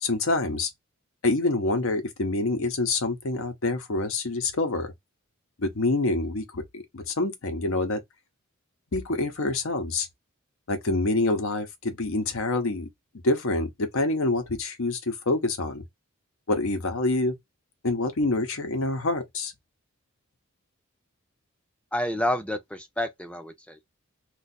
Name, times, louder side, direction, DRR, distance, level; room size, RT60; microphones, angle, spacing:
voice 1, 0.0-0.7 1.2-4.9 5.6-8.0 8.9-10.1 10.7-12.9 13.2-15.8 16.5-17.3 17.8-19.5, left 2 dB, 75° left, 0.8 m, -26 dB
voice 2, 21.9-24.0, left 1 dB, 5° left, 0.5 m, -29 dB
2.7 x 2.4 x 4.0 m
head